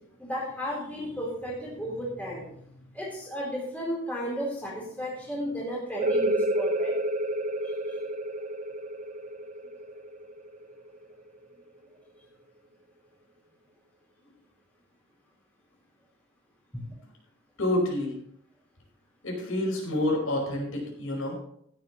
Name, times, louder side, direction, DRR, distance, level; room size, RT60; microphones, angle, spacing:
voice 1, 0.2-2.6 2.9-6.9 16.7-16.8, equal, 10° left, -6 dB, 4.0 m, -33 dB
sound 1, 6.0-11.4, right 1 dB, 35° right, 0.7 m, -30 dB
voice 2, 17.6-18.2 19.2-21.3, left 1 dB, 90° left, -1 dB, 5.3 m, -28 dB
16.0 x 10.0 x 3.2 m, 0.72 s
head